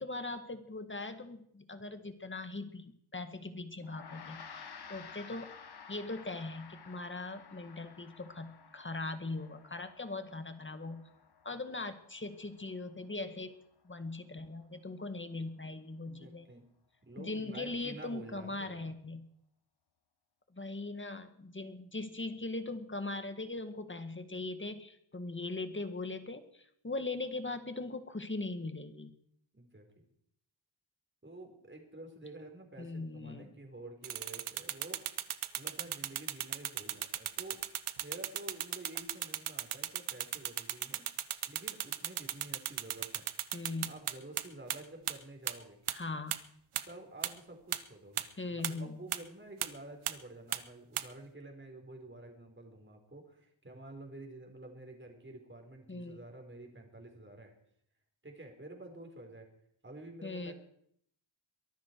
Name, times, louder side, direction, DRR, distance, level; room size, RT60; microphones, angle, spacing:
voice 1, 0.0-5.5 5.9-11.0 11.4-13.5 13.8-16.5 17.2-19.3 20.5-29.2 32.8-33.5 43.5-43.9 45.9-46.4 48.4-49.0 55.9-56.2 60.2-60.5, left 2 dB, 25° left, 9 dB, 1.9 m, -40 dB
Gong, 3.8-13.5, left 6 dB, 50° left, 1.4 m, -53 dB
voice 2, 16.0-16.7 17.1-18.9 29.5-30.0 31.2-35.0 35.5-37.6 38.0-41.1 41.5-43.3 43.8-45.8 46.8-57.5 58.2-59.5 59.8-60.5, right 2 dB, 25° right, 2 dB, 4.5 m, -50 dB
sound 1, 34.0-44.4 44.7-44.8 45.1-45.2 45.5-45.6 45.9-46.0 46.3-46.4 46.7-46.8 47.2-47.3 47.7-47.8 48.2-48.3 48.6-48.7 49.1-49.2 49.6-49.7 50.1-50.2 50.5-50.6 51.0-51.1, right 11 dB, 90° right, 0.9 m, -34 dB
23.0 x 13.0 x 4.7 m, 0.68 s
cardioid pair, 75°, 48 cm